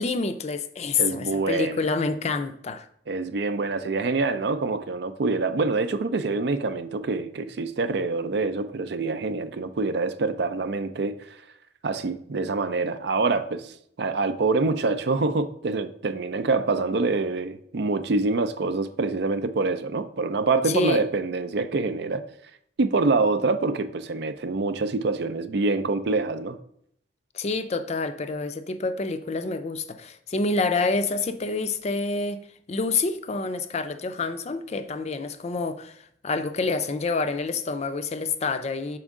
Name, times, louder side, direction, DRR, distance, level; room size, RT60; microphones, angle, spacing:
voice 1, 0.0-2.9 20.6-21.0 27.3-32.4 32.7-39.0, left 3 dB, 35° left, 0.4 m, -27 dB
voice 2, 1.0-1.8 3.1-11.1 11.8-22.2 22.8-26.6, right 3 dB, 65° right, 0.5 m, -26 dB
6.2 x 4.4 x 3.6 m
head